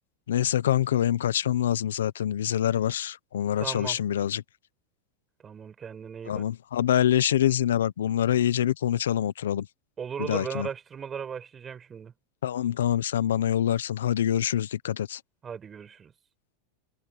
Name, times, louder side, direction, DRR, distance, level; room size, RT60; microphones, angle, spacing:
voice 1, 0.3-4.4 6.3-9.7 10.2-10.7 12.4-15.2, left 11 dB, 90° left, 0.9 m, -25 dB
voice 2, 3.6-4.0 5.4-6.4 10.0-12.1 15.4-16.1, right 7 dB, 25° right, 6.4 m, -37 dB
supercardioid pair, 120°, 0 cm